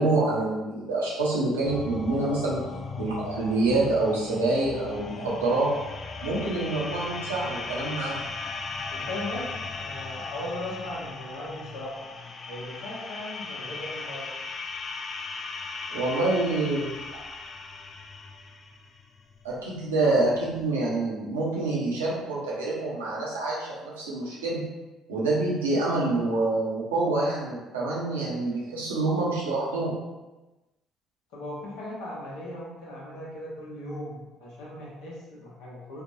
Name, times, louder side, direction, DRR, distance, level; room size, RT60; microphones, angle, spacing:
voice 1, 0.0-2.6 3.0-5.7 6.2-8.2 15.9-16.9 19.4-24.6 25.1-29.9, right 2 dB, 85° right, -6 dB, 0.7 m, -26 dB
sound 1, 1.6-20.6, left 4 dB, 40° left, 0.3 m, -38 dB
voice 2, 8.9-14.3 31.3-36.0, left 1 dB, 70° left, -5 dB, 0.9 m, -38 dB
3.4 x 2.1 x 2.6 m, 1.1 s
hypercardioid pair, 50°, 0 cm